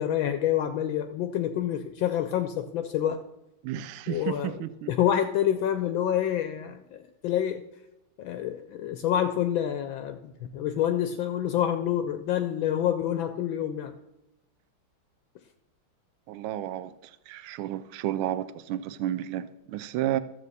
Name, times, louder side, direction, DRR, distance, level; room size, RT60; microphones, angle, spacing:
voice 1, 0.0-3.2 4.1-7.6 8.2-10.2 10.5-13.9, left 10 dB, 75° left, 8 dB, 1.3 m, -27 dB
voice 2, 3.6-4.9 16.3-16.9 17.3-20.2, right 12 dB, 80° right, 15 dB, 1.4 m, -31 dB
13.0 x 7.5 x 4.1 m, 0.93 s
omnidirectional pair, 2.3 m